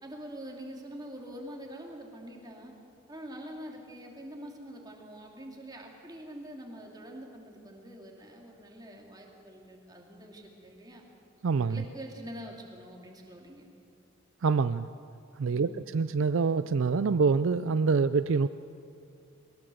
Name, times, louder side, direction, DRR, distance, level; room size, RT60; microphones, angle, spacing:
voice 1, 0.0-2.7 3.1-11.1 11.7-13.6 15.5-15.8, right 1 dB, 20° right, 0 dB, 2.9 m, -45 dB
voice 2, 11.4-11.8 14.4-14.9 15.4-18.5, right 5 dB, 65° right, 13 dB, 0.4 m, -26 dB
21.5 x 18.5 x 7.9 m, 2.5 s
head